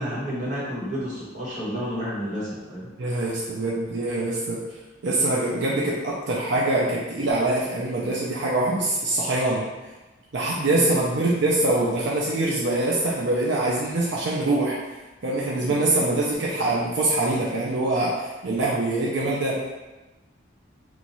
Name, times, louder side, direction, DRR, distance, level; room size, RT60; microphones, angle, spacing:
voice 1, 0.0-2.9 10.6-10.9 15.6-15.7, equal, 40° right, -7 dB, 1.3 m, -31 dB
voice 2, 3.0-4.6 5.0-9.6 10.3-14.8 15.2-19.6, right 2 dB, 60° right, -5 dB, 0.6 m, -24 dB
3.0 x 2.4 x 4.0 m, 1.1 s
head